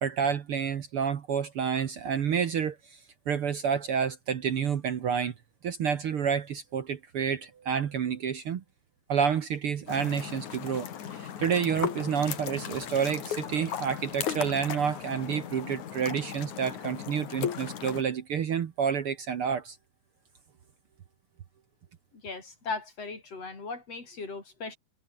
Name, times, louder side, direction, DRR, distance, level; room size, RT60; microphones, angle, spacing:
voice 1, 0.0-3.0 3.3-5.3 5.6-8.6 9.1-19.8, right 7 dB, 55° right, 2.0 m, -29 dB
sound 1, 9.9-18.0, left 9 dB, 80° left, 3.5 m, -36 dB
voice 2, 22.2-24.8, left 3 dB, 55° left, 6.5 m, -37 dB
omnidirectional pair, 3.3 m